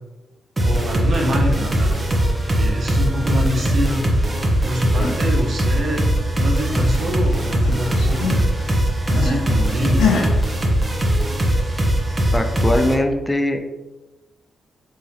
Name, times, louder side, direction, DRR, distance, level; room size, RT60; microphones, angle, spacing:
sound 1, 0.6-12.9, right 1 dB, 35° right, 0.8 m, -20 dB
voice 1, 0.6-2.1 2.5-4.0 4.6-8.4 9.2-10.1, equal, 60° right, 0 dB, 0.9 m, -25 dB
sound 2, 4.7-5.3 5.6-7.0 7.3-9.5 10.0-10.4, left 5 dB, 85° left, 0.6 m, -25 dB
voice 2, 12.3-13.6, left 1 dB, 20° left, 5 dB, 0.4 m, -20 dB
3.8 x 2.9 x 2.8 m, 1.1 s
cardioid pair, 60°, 0 cm